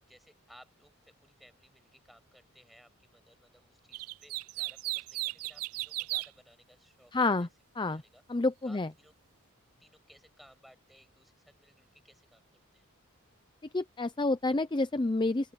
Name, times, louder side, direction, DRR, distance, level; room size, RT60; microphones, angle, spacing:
voice 1, 0.0-7.5 7.9-8.2 8.6-9.2 9.8-12.9, equal, ahead, 7.1 m, -60 dB
sound 1, 3.9-6.3, right 20 dB, 70° right, 0.3 m, -35 dB
voice 2, 7.1-7.5 7.8-8.0 8.3-8.9 13.7-15.5, left 2 dB, 20° left, 0.5 m, -29 dB
open air
head